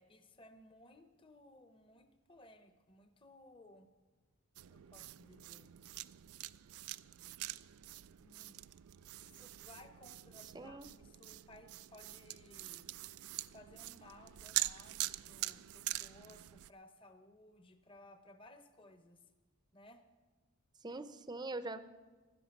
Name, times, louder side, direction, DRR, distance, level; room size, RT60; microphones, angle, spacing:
voice 1, 0.0-3.9 4.7-5.7 8.2-8.7 9.2-12.9 13.4-19.2 19.7-20.0, left 1 dB, 25° left, 8 dB, 0.9 m, -60 dB
sound 1, 4.6-16.7, right 16 dB, 85° right, 0.4 m, -44 dB
voice 2, 10.5-10.9 20.8-21.9, right 2 dB, 20° right, 11 dB, 0.6 m, -43 dB
16.0 x 12.0 x 6.0 m, 1.3 s
head